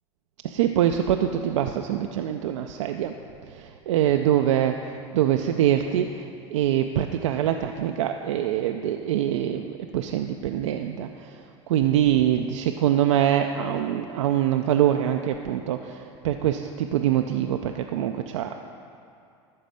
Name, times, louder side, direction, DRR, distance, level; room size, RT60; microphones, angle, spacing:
voice 1, 0.4-3.1 3.5-11.4 11.7-18.6, right 11 dB, 80° right, 5 dB, 0.4 m, -24 dB
12.0 x 4.1 x 7.6 m, 2.6 s
hypercardioid pair, 90°, 16 cm